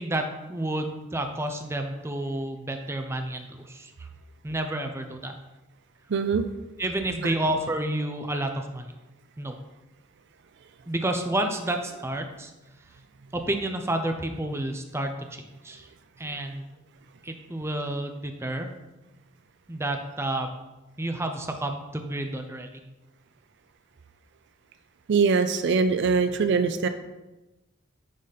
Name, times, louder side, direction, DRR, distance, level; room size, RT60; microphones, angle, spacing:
voice 1, 0.0-4.1 4.4-5.3 6.8-8.9 9.4-9.6 10.9-12.5 13.3-15.9 16.2-16.7 17.2-18.7 19.7-20.5 21.0-22.8, right 1 dB, 15° right, 5 dB, 0.6 m, -30 dB
voice 2, 6.1-6.4 7.2-7.3 25.1-26.9, right 5 dB, 65° right, 10 dB, 0.5 m, -22 dB
10.0 x 4.0 x 4.1 m, 1.0 s
head